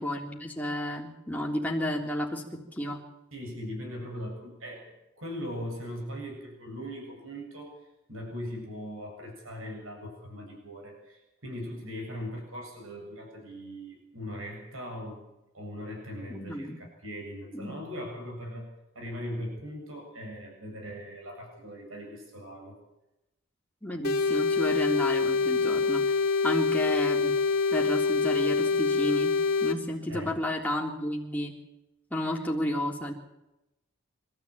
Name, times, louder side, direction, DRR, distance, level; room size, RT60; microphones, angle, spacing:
voice 1, 0.0-3.0 16.3-16.8 17.5-17.7 23.8-26.0 26.4-27.3 27.7-29.3 29.6-31.5 32.1-33.1, left 1 dB, 10° left, -1 dB, 3.5 m, -31 dB
voice 2, 3.3-4.9 5.2-7.7 8.1-15.2 15.5-16.7 17.0-22.8 30.1-30.4, equal, 75° right, 2 dB, 7.8 m, -39 dB
sound 1, 24.0-29.8, left 4 dB, 45° left, 2.9 m, -25 dB
25.5 x 13.5 x 8.8 m, 0.93 s
head